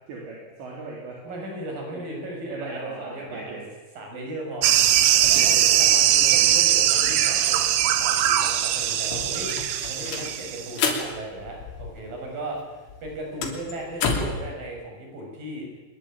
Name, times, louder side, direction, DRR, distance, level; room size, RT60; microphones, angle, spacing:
voice 1, 0.1-1.2 1.9-2.1 2.5-3.7 5.2-5.8, right 3 dB, 65° right, -2 dB, 5.9 m, -38 dB
voice 2, 1.2-3.6 4.0-4.7 5.3-15.7, right 1 dB, 45° right, 1 dB, 8.6 m, -36 dB
sound 1, 4.6-10.8, right 11 dB, 80° right, 3.7 m, -20 dB
sound 2, 8.0-8.1 8.3-12.3 12.5-14.5, left 5 dB, 75° left, 5.6 m, -31 dB
25.0 x 22.0 x 9.0 m, 1.2 s
omnidirectional pair, 5.6 m